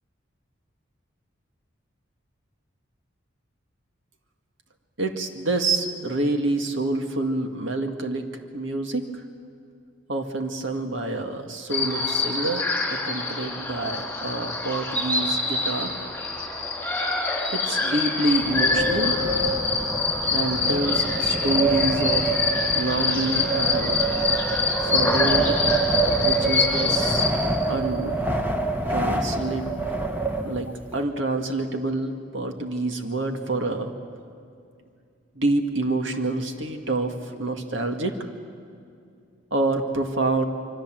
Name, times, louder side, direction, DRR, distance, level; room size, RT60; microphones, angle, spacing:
voice 1, 5.0-9.2 10.1-15.9 17.5-19.2 20.3-22.3 22.7-24.0 24.8-25.6 26.2-27.3 27.7-28.2 28.9-29.7 30.4-33.9 35.4-38.2 39.5-40.5, right 2 dB, 70° right, 4 dB, 2.0 m, -27 dB
sound 1, 11.7-27.3, left 3 dB, 10° left, 4.2 m, -25 dB
Wind, 18.3-30.9, right 3 dB, 10° right, 1.5 m, -26 dB
26.5 x 24.0 x 7.7 m, 2.3 s
head